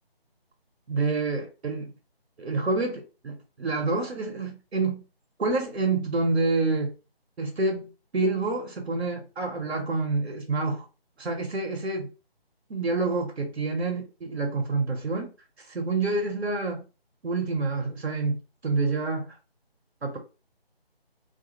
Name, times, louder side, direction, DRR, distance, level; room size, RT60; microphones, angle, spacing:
voice 1, 0.9-1.9 2.4-5.0 5.4-6.9 7.4-10.8 11.2-12.1 12.7-15.3 15.6-16.9 17.2-19.4 20.0-20.2, right 3 dB, 85° right, 0.7 m, -28 dB
2.3 x 2.0 x 2.7 m
figure-of-eight pair, 160°, 31 cm